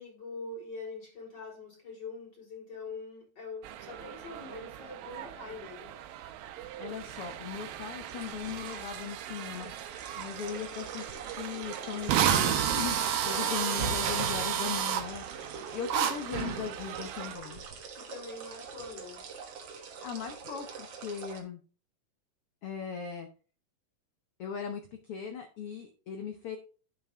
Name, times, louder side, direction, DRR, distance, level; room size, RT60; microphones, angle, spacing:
voice 1, 0.0-5.9 13.3-13.8 17.9-19.3, left 3 dB, 30° left, 4.3 m, -43 dB
sound 1, 3.6-17.4, right 10 dB, 90° right, 2.3 m, -39 dB
voice 2, 6.8-9.7 10.2-13.0 13.2-15.3 15.7-17.6 20.0-21.6 22.6-23.3 24.4-26.6, left 7 dB, 85° left, 1.2 m, -38 dB
sound 2, 7.8-21.4, right 5 dB, 55° right, 1.9 m, -42 dB
Drill, 11.4-11.5 12.1-15.0 15.9-16.1, right 9 dB, 70° right, 1.4 m, -28 dB
9.4 x 5.8 x 3.5 m
omnidirectional pair, 3.9 m